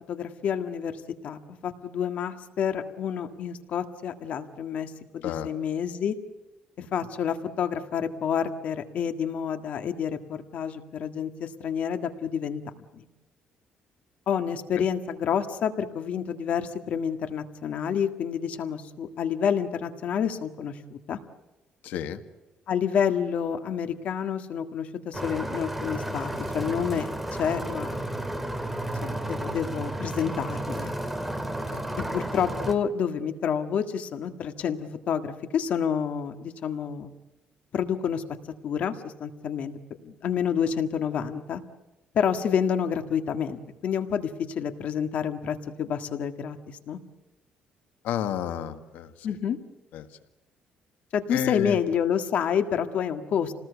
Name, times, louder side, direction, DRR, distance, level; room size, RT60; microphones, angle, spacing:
voice 1, 0.1-6.1 6.9-12.6 12.9-13.0 14.3-21.2 22.7-28.0 29.0-30.9 32.1-37.1 37.7-38.2 38.6-39.7 40.0-41.6 42.1-47.0 49.2-49.6 51.1-53.5, left 7 dB, 55° left, 8 dB, 1.8 m, -29 dB
voice 2, 21.8-22.2 31.7-31.8 48.0-49.1 49.9-50.1 51.3-51.8, left 10 dB, 85° left, 9 dB, 1.7 m, -31 dB
sound 1, 25.1-32.7, right 1 dB, 5° right, 2.2 m, -32 dB
29.0 x 19.5 x 8.2 m, 1.1 s
cardioid pair, 150°, 3 cm